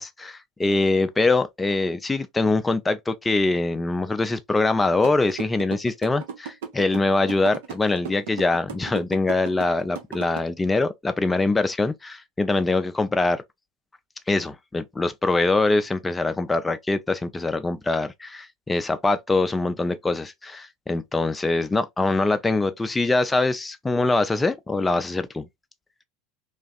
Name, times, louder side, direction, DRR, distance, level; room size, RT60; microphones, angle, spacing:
voice 1, 0.0-13.4 14.3-25.5, left 3 dB, 15° left, 0.3 m, -23 dB
sound 1, 5.0-10.4, right 7 dB, 70° right, 0.6 m, -35 dB
2.4 x 2.4 x 2.2 m
hypercardioid pair, 80°, 0 cm